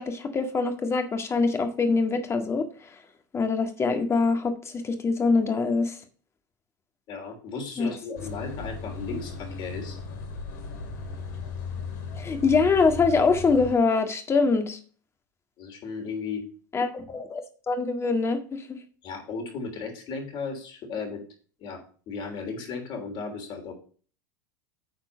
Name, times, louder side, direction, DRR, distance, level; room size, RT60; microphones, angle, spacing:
voice 1, 0.0-2.7 3.3-6.0 7.8-7.9 12.2-14.8 16.7-18.8, left 4 dB, 25° left, 6 dB, 1.7 m, -24 dB
voice 2, 7.1-10.0 15.6-16.4 19.0-21.2 21.6-23.7, left 4 dB, 50° left, 4 dB, 3.3 m, -35 dB
sound 1, 8.2-13.7, left 4 dB, 65° left, 2.4 m, -36 dB
9.2 x 4.4 x 5.6 m, 0.40 s
hypercardioid pair, 90°, 11 cm